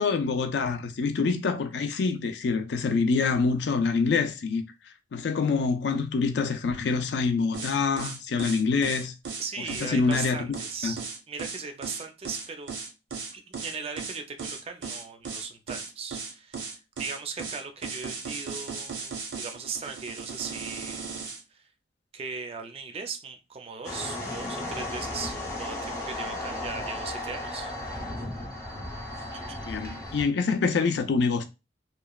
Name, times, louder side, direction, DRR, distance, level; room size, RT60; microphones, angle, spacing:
voice 1, 0.0-4.6 5.1-9.1 9.8-10.4 10.8-10.9 29.6-31.5, left 4 dB, 65° left, 0.4 m, -26 dB
sound 1, 7.5-21.4, right 5 dB, 80° right, 0.7 m, -36 dB
voice 2, 9.4-12.7 13.3-21.2 21.5-21.7 22.1-27.7, right 5 dB, 30° right, 0.4 m, -38 dB
sound 2, 23.8-30.2, left 1 dB, 15° left, 0.6 m, -35 dB
3.0 x 2.1 x 2.3 m
head